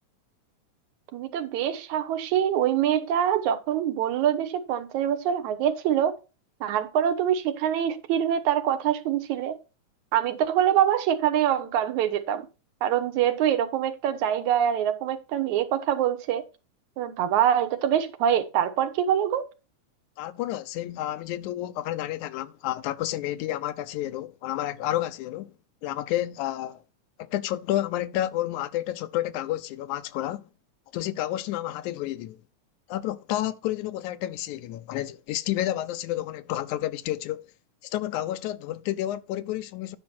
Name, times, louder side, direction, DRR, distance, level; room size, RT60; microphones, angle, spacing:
voice 1, 1.1-6.1 6.6-9.6 10.1-12.5 12.8-16.4 17.0-19.4, right 10 dB, 75° right, 2.3 m, -24 dB
voice 2, 20.2-25.5 25.8-26.8 27.2-30.4 30.9-32.4 32.9-37.5 37.8-40.0, left 13 dB, 80° left, 2.0 m, -30 dB
10.5 x 5.6 x 4.3 m
omnidirectional pair, 3.5 m